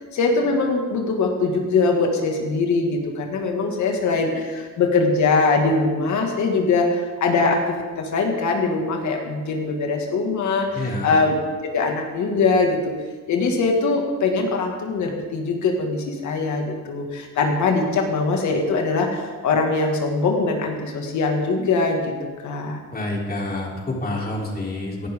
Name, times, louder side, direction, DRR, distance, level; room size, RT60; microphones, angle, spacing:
voice 1, 0.1-11.4 11.6-12.9 13.3-22.8, left 3 dB, 70° left, 2 dB, 2.1 m, -22 dB
voice 2, 10.7-11.1 22.9-25.1, left 1 dB, 30° left, -2 dB, 3.5 m, -28 dB
17.0 x 11.5 x 3.7 m, 1.4 s
cardioid pair, 90°, 30 cm